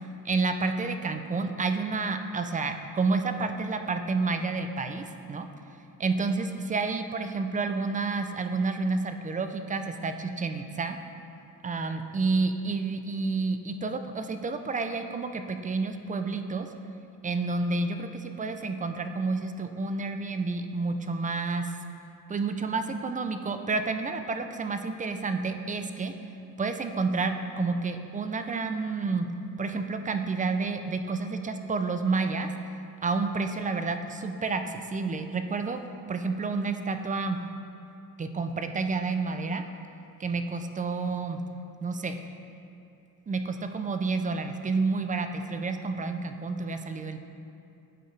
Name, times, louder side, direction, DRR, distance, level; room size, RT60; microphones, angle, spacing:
voice 1, 0.2-5.5 6.0-11.0 11.6-16.7 17.2-21.7 22.3-26.1 26.6-29.3 29.6-32.5 33.0-35.8 36.1-37.4 38.2-39.6 40.2-41.4 41.8-42.2 43.3-47.2, right 4 dB, 20° right, 7 dB, 0.3 m, -30 dB
10.0 x 4.4 x 3.2 m, 2.8 s
cardioid pair, 110°, 37 cm